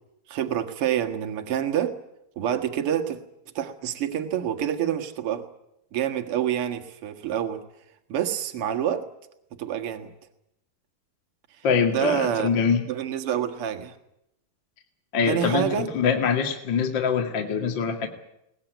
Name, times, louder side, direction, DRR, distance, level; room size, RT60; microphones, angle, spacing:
voice 1, 0.3-1.9 2.4-3.2 3.5-5.5 5.9-7.6 8.1-9.1 9.6-10.1 11.9-12.5 12.9-14.0 15.3-15.9, right 10 dB, 45° right, 6 dB, 2.0 m, -27 dB
voice 2, 11.6-12.9 15.1-18.1, left 6 dB, 35° left, 3 dB, 2.1 m, -24 dB
22.5 x 19.0 x 9.2 m, 0.85 s
omnidirectional pair, 4.4 m